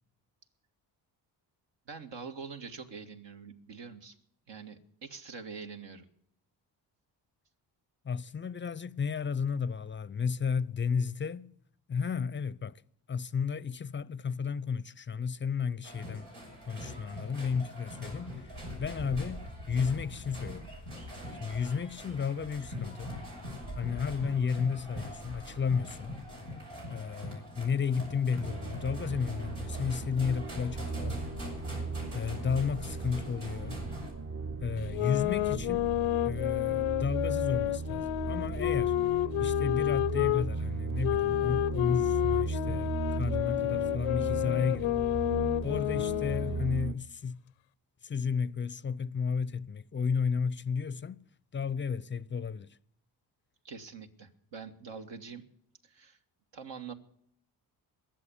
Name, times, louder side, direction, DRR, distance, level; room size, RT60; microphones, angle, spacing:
voice 1, 1.9-4.2 4.5-6.1 53.6-55.5 55.8-56.2 56.5-56.9, right 5 dB, 65° right, 1.9 m, -44 dB
voice 2, 8.0-11.5 11.9-12.8 13.1-16.2 16.7-18.4 18.8-20.7 21.4-23.1 23.8-26.2 26.9-31.2 32.1-33.8 34.6-35.9 36.2-39.0 39.4-45.0 45.6-47.4 48.0-51.2 51.5-52.8, left 6 dB, 25° left, 0.6 m, -33 dB
sound 1, 15.8-34.1, equal, 85° right, 6.5 m, -42 dB
sound 2, 28.4-46.9, right 4 dB, 30° right, 0.9 m, -36 dB
sound 3, 34.8-40.5 41.0-46.6, left 17 dB, 80° left, 0.6 m, -30 dB
21.0 x 7.7 x 7.1 m
supercardioid pair, 60°, 47 cm